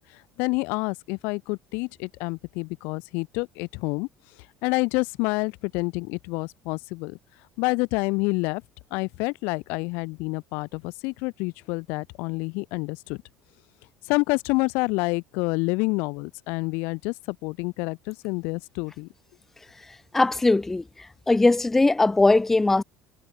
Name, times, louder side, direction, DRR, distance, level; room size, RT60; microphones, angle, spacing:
voice 1, 0.1-4.1 4.6-7.2 7.6-8.6 8.9-13.2 14.0-19.1, left 28 dB, 75° left, 0.9 m, -28 dB
voice 2, 20.1-20.8 21.3-22.8, left 2 dB, 10° left, 0.8 m, -19 dB
cardioid pair, 145°, 3 cm